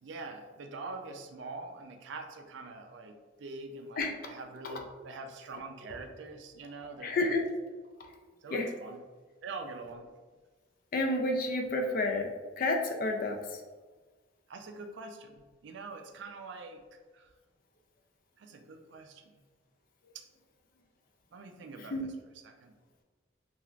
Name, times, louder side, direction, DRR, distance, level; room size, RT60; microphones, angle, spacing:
voice 1, 0.0-7.4 8.4-9.1 9.4-10.1 14.5-16.8 17.1-17.3 18.4-19.4 20.1-20.2 21.3-22.7, right 3 dB, 65° right, 5 dB, 0.3 m, -44 dB
voice 2, 7.0-7.4 8.5-8.7 10.9-12.3 12.6-13.4 21.9-22.1, left 2 dB, 45° left, 3 dB, 0.4 m, -30 dB
3.1 x 2.4 x 2.3 m, 1.3 s
head